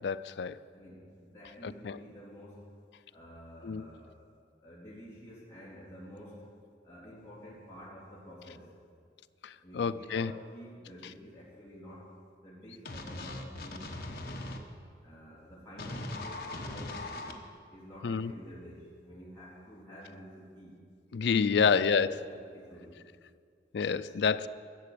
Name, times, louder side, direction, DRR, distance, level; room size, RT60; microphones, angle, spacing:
voice 1, 0.0-0.6 1.8-2.0 3.6-3.9 9.7-10.3 18.0-18.3 21.1-22.1 23.7-24.5, left 6 dB, 80° left, 13 dB, 0.4 m, -28 dB
voice 2, 0.7-2.8 3.1-4.1 4.6-6.5 6.8-8.7 9.6-12.1 12.4-14.5 15.0-17.3 17.7-20.8 21.4-23.0, equal, 15° left, -9 dB, 3.5 m, -50 dB
sound 1, 12.8-14.6 15.8-17.3, left 2 dB, 60° left, 1.1 m, -39 dB
13.0 x 6.8 x 8.5 m, 2.2 s
head